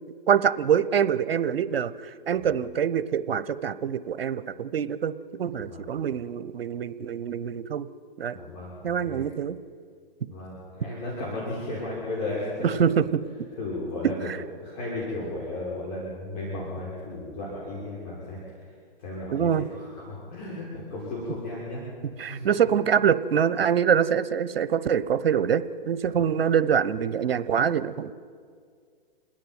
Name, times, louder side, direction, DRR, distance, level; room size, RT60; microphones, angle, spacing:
voice 1, 0.3-7.9 8.2-8.4 8.8-9.6 12.8-13.1 14.3-14.4 19.3-19.6 22.2-28.1, right 8 dB, 80° right, 15 dB, 0.9 m, -25 dB
voice 2, 5.5-5.9 8.3-9.3 10.3-13.1 13.5-14.3 14.6-21.8 22.1-22.5 26.0-26.2, left 2 dB, 45° left, -5 dB, 6.0 m, -35 dB
27.5 x 10.5 x 9.4 m, 2.1 s
hypercardioid pair, 135°, 29 cm